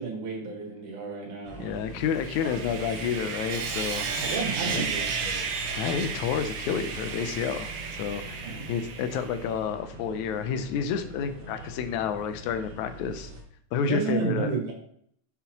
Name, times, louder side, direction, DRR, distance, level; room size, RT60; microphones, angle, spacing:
voice 1, 0.0-1.8 4.2-5.4 8.4-8.7 13.8-14.7, right 4 dB, 85° right, 0 dB, 3.0 m, -32 dB
sound 1, 1.4-13.4, right 1 dB, 50° right, 1.0 m, -43 dB
voice 2, 1.6-4.1 4.6-4.9 5.8-7.7 8.0-13.3 13.7-14.5, left 7 dB, 80° left, 9 dB, 1.9 m, -30 dB
Sawing, 2.0-9.4, right 5 dB, 70° right, 1.8 m, -33 dB
6.1 x 5.6 x 2.8 m, 0.65 s
omnidirectional pair, 3.4 m